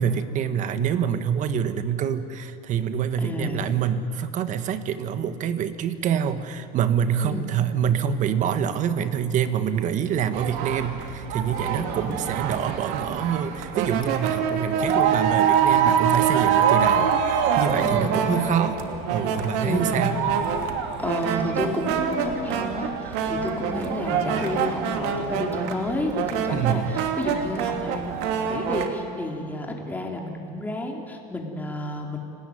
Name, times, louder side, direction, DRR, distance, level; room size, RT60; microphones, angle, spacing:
voice 1, 0.0-18.7 19.1-20.2 26.5-26.9, right 8 dB, 45° right, 10 dB, 1.7 m, -26 dB
voice 2, 3.2-3.7 7.2-7.5 11.8-12.2 17.8-18.6 19.6-20.1 21.0-32.2, left 1 dB, 10° left, 1 dB, 4.0 m, -31 dB
sound 1, 10.3-28.9, right 7 dB, 65° right, 2.7 m, -25 dB
30.0 x 18.5 x 9.7 m, 2.7 s
supercardioid pair, 125°, 18 cm